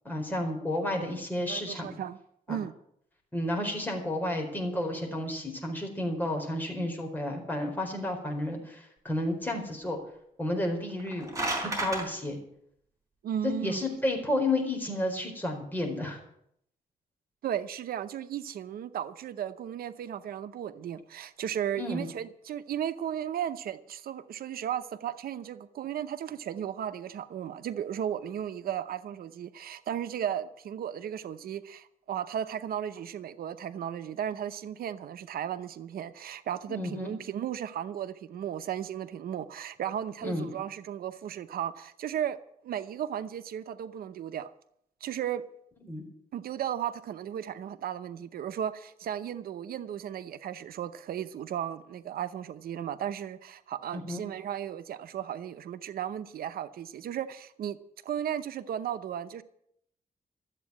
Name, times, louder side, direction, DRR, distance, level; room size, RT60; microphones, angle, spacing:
voice 1, 0.0-2.0 2.5-2.6 3.3-10.0 10.4-11.3 11.8-12.4 13.4-16.2 21.8-22.1 36.7-37.1 40.2-40.5 45.9-46.1 53.9-54.2, left 1 dB, 10° left, 4.3 m, -31 dB
voice 2, 1.5-2.2 2.5-2.7 13.2-13.8 17.4-42.4 42.6-44.5 45.0-45.5 46.3-57.8 58.0-59.4, right 9 dB, 90° right, 0.7 m, -35 dB
sound 1, 10.9-12.0, right 2 dB, 20° right, 4.3 m, -31 dB
13.5 x 8.2 x 9.6 m
cardioid pair, 110°, 15 cm